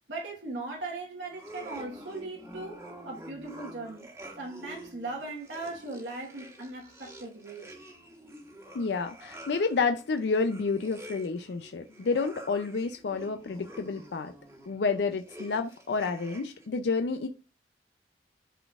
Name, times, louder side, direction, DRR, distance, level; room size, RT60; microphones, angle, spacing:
voice 1, 0.1-4.1 4.4-7.7, right 2 dB, 85° right, 1.3 m, -39 dB
sound 1, 1.3-16.7, equal, 15° right, 1.3 m, -48 dB
voice 2, 8.7-14.3 14.7-17.3, left 4 dB, 70° left, 0.5 m, -29 dB
11.0 x 4.0 x 2.4 m
head